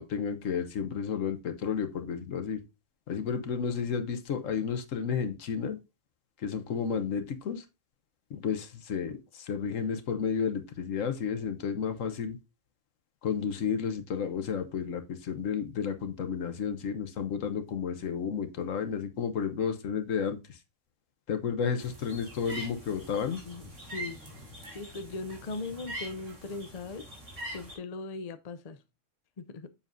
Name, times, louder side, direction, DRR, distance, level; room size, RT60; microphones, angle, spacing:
voice 1, 0.0-2.6 3.1-5.8 6.4-7.6 8.3-12.4 13.2-20.6 21.3-23.4, left 6 dB, 80° left, 1.3 m, -32 dB
sound 1, 21.8-27.7, right 1 dB, 70° right, 3.3 m, -43 dB
voice 2, 23.4-24.2 24.7-27.1 27.5-28.8 29.4-29.7, left 3 dB, 40° left, 0.6 m, -39 dB
7.3 x 7.0 x 2.6 m
omnidirectional pair, 1.3 m